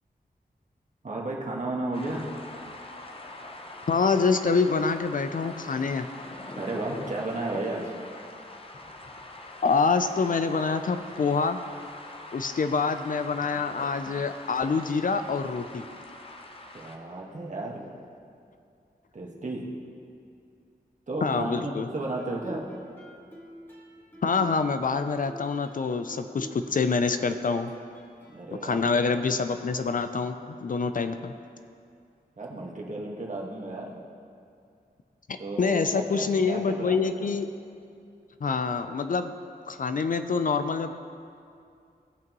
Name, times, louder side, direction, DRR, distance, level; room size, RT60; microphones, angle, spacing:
voice 1, 1.0-2.2 6.6-7.9 16.7-17.8 19.1-19.6 21.1-22.7 28.3-28.8 32.4-33.9 35.4-37.3, right 2 dB, 50° right, -2 dB, 1.5 m, -33 dB
sound 1, 1.9-17.0, left 2 dB, 35° left, 0.8 m, -43 dB
voice 2, 3.9-6.1 9.6-11.6 12.3-15.9 21.2-21.9 24.2-27.7 28.6-31.3 35.3-37.5 38.4-39.3 39.7-40.9, left 4 dB, 55° left, 9 dB, 0.4 m, -26 dB
Guitar, 22.2-29.9, equal, 15° left, 1.6 m, -47 dB
17.5 x 6.0 x 3.0 m, 2.4 s
wide cardioid pair, 100°, 17 cm